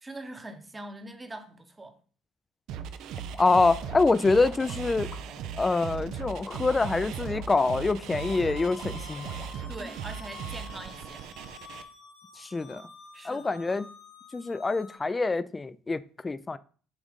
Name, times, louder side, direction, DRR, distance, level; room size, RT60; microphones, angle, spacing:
voice 1, 0.0-2.0 9.7-11.3 13.1-13.5, right 2 dB, 20° right, 0.9 m, -42 dB
sound 1, 2.7-11.8, right 8 dB, 70° right, 0.5 m, -38 dB
sound 2, 3.3-9.5, left 3 dB, 40° left, 1.0 m, -49 dB
voice 2, 3.4-5.1 5.6-9.3 12.4-12.9 13.2-13.9 14.3-16.6, left 3 dB, 20° left, 0.3 m, -25 dB
sound 3, 8.2-15.0, left 5 dB, 75° left, 1.2 m, -48 dB
7.1 x 2.6 x 5.1 m
supercardioid pair, 85°, 0 cm